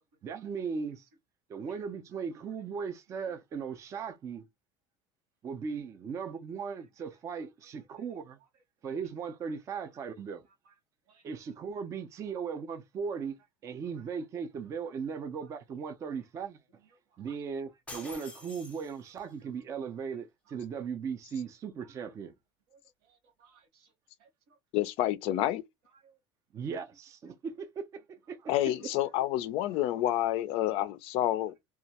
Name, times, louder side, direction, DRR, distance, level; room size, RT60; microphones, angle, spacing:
voice 1, 0.2-1.1 1.5-4.4 5.4-8.4 8.8-10.4 11.2-16.6 17.2-22.3 26.5-28.0 28.3-28.5, right 6 dB, 25° right, 0.4 m, -38 dB
voice 2, 1.5-1.8 10.0-10.1 10.7-10.8 11.1-11.2 17.3-17.4 22.7-22.8 23.1-23.9 24.2-24.6 26.0-26.2, right 5 dB, 75° right, 1.1 m, -62 dB
sound 1, 17.9-19.3, left 2 dB, 10° left, 0.6 m, -47 dB
voice 3, 24.7-25.6 28.5-31.5, left 13 dB, 55° left, 0.4 m, -29 dB
2.2 x 2.1 x 2.7 m
cardioid pair, 150°, 12 cm